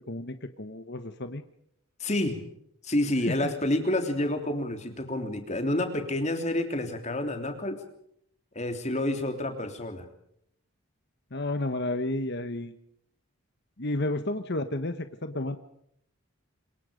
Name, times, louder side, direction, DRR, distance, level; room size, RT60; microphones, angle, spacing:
voice 1, 0.1-1.4 3.3-3.5 11.3-12.7 13.8-15.6, left 2 dB, 50° left, 9 dB, 1.2 m, -31 dB
voice 2, 2.0-2.4 2.8-7.8 8.5-10.0, left 1 dB, 30° left, 6 dB, 3.2 m, -29 dB
27.0 x 22.5 x 5.2 m, 0.71 s
head